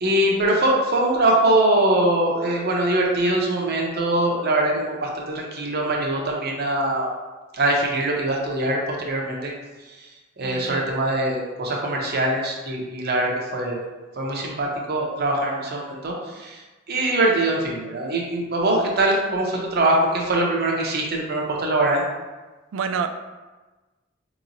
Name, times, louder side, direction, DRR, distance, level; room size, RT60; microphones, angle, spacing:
voice 1, 0.0-7.1 7.5-9.5 10.4-13.8 14.2-16.6 16.9-22.0, right 1 dB, 50° right, -1 dB, 0.7 m, -22 dB
voice 2, 10.4-10.9 22.7-23.1, right 6 dB, 75° right, 8 dB, 0.3 m, -28 dB
4.7 x 3.0 x 2.6 m, 1.2 s
head